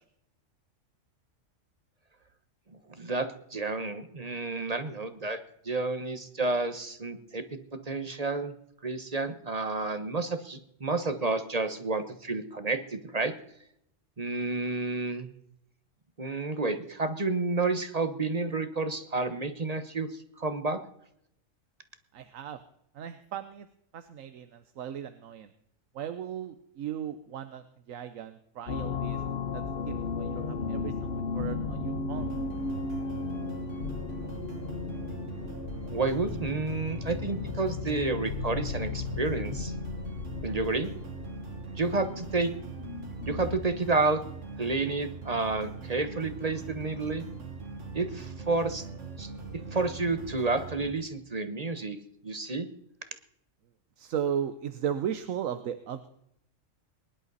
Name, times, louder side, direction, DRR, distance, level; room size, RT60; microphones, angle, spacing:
voice 1, 2.9-8.5 8.8-13.3 14.2-15.3 16.2-20.8 35.9-39.7 40.4-40.9 41.8-42.5 43.3-44.2 44.6-47.2 47.9-48.9 49.2-52.0 52.2-52.7, right 3 dB, 30° right, 10 dB, 1.1 m, -30 dB
voice 2, 22.1-22.6 22.9-23.7 23.9-25.5 25.9-29.2 29.5-32.3 54.0-56.1, right 9 dB, 80° right, 10 dB, 1.2 m, -36 dB
sound 1, 28.7-43.7, left 4 dB, 50° left, 1.3 m, -35 dB
sound 2, 32.1-50.9, right 4 dB, 65° right, 2.1 m, -41 dB
22.5 x 11.0 x 4.1 m, 0.75 s
omnidirectional pair, 1.4 m